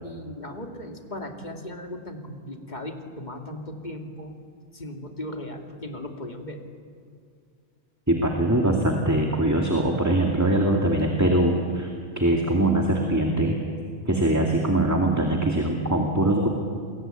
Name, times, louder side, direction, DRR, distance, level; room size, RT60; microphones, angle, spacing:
voice 1, 0.0-4.3 4.7-6.7, left 1 dB, 40° left, 3 dB, 2.7 m, -37 dB
voice 2, 8.1-13.6 14.1-16.5, right 1 dB, 15° right, 1 dB, 2.4 m, -22 dB
29.0 x 22.0 x 9.1 m, 2.3 s
omnidirectional pair, 1.1 m